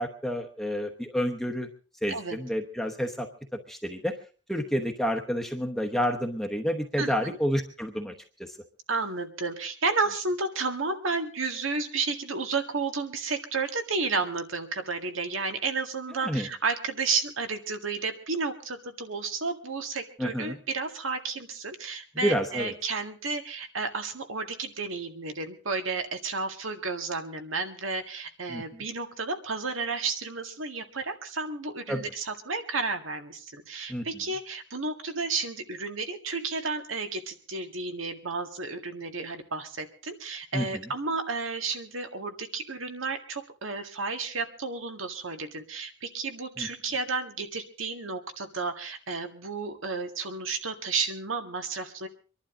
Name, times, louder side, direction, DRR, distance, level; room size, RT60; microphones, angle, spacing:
voice 1, 0.0-1.7 2.0-3.3 3.7-4.1 4.5-8.1 8.4-8.6 16.2-16.5 20.2-20.6 22.1-22.7 28.5-28.8 31.9-32.0 33.9-34.0 40.5-40.8 46.6-46.7, equal, ahead, 3 dB, 0.9 m, -29 dB
voice 2, 7.0-7.4 8.9-52.1, right 4 dB, 85° right, 6 dB, 1.9 m, -32 dB
25.0 x 11.5 x 3.8 m, 0.38 s
head